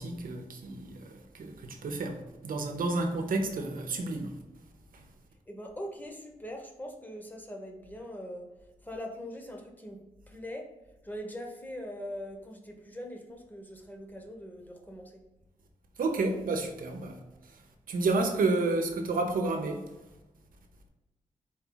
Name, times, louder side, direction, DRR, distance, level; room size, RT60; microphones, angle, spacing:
voice 1, 0.0-4.3 4.9-5.0 16.0-17.2 17.5-17.6 17.9-19.9, right 3 dB, 85° right, 0.8 m, -30 dB
voice 2, 5.5-8.5 8.8-10.7 11.0-15.2, equal, 10° left, 1.0 m, -42 dB
4.4 x 3.0 x 3.8 m
cardioid pair, 75°, 14 cm